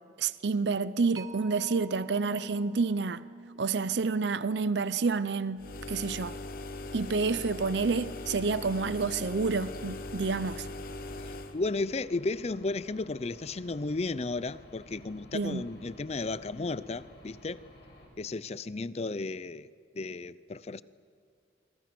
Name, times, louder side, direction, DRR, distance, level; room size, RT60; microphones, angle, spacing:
voice 1, 0.2-3.2 3.6-6.3 6.9-10.7 15.3-15.6, right 4 dB, 75° right, 0.6 m, -29 dB
Mallet percussion, 1.2-8.2, right 3 dB, 20° right, 1.1 m, -49 dB
sound 1, 5.6-11.6, left 2 dB, 50° left, 1.0 m, -40 dB
Aircraft / Engine, 9.6-18.0, left 1 dB, 65° left, 6.7 m, -53 dB
voice 2, 11.2-17.6 18.2-19.7 19.9-20.8, left 3 dB, 35° left, 0.5 m, -34 dB
26.0 x 25.0 x 6.1 m
head